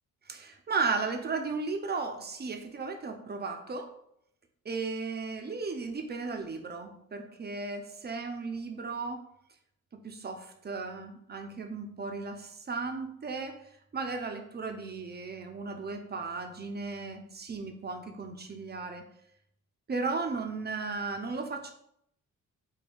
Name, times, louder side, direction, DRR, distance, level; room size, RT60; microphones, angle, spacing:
voice 1, 0.3-3.9 4.6-9.2 10.0-13.6 13.9-19.1 19.9-21.7, right 4 dB, 30° right, 5 dB, 0.6 m, -35 dB
3.7 x 2.2 x 3.4 m, 0.73 s
supercardioid pair, 55°, 35 cm